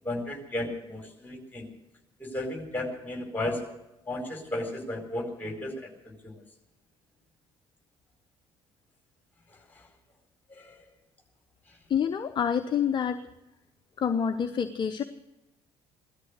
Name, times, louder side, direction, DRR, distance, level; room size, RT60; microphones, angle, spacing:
voice 1, 0.0-1.7 2.2-3.6 4.1-6.3 10.6-10.8, left 1 dB, 10° left, 3 dB, 4.4 m, -34 dB
voice 2, 11.9-13.3 14.0-15.0, left 7 dB, 35° left, 9 dB, 0.8 m, -27 dB
17.0 x 13.0 x 6.4 m, 0.91 s
figure-of-eight pair, 50°, 14 cm